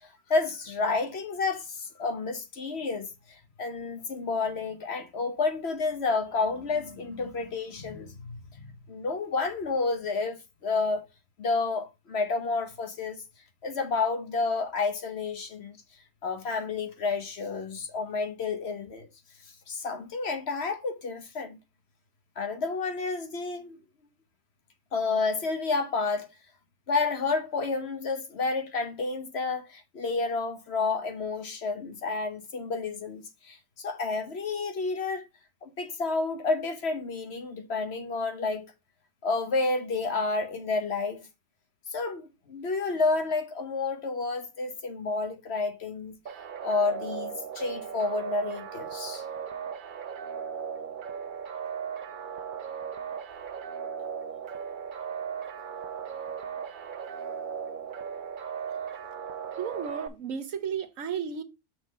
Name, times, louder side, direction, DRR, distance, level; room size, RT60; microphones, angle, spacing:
voice 1, 0.3-11.0 11.4-13.2 13.6-15.8 16.2-19.1 19.7-21.6 22.4-23.8 24.9-26.3 26.9-35.3 35.6-38.7 39.2-41.3 41.9-46.2 46.6-49.2, left 4 dB, 55° left, 1.2 m, -30 dB
sound 1, 46.3-60.1, right 7 dB, 50° right, 0.7 m, -37 dB
voice 2, 59.5-61.4, right 7 dB, 90° right, 1.4 m, -33 dB
6.2 x 3.7 x 5.2 m
omnidirectional pair, 1.3 m